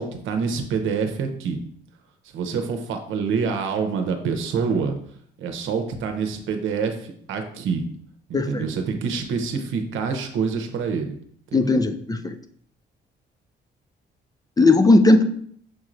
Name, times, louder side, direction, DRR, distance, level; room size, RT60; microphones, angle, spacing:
voice 1, 0.0-1.6 2.3-4.9 5.4-7.8 8.3-11.2 11.5-11.8, right 5 dB, 85° right, 5 dB, 0.7 m, -26 dB
voice 2, 8.3-8.7 11.5-12.4 14.6-15.2, left 2 dB, 20° left, 8 dB, 0.4 m, -17 dB
6.3 x 3.1 x 2.5 m, 0.63 s
cardioid pair, 90°, 20 cm